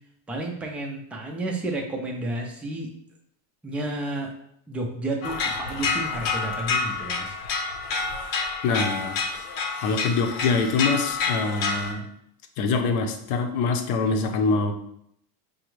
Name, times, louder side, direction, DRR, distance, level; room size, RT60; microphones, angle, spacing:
voice 1, 0.3-2.9 3.6-4.3 4.7-7.3, right 2 dB, 5° right, 0 dB, 0.3 m, -31 dB
sound 1, 5.2-11.9, left 4 dB, 85° left, 0.9 m, -28 dB
voice 2, 8.6-9.2 9.8-12.1 12.6-14.7, left 4 dB, 60° left, 5 dB, 0.7 m, -24 dB
5.1 x 2.3 x 3.0 m, 0.72 s
supercardioid pair, 130°, 41 cm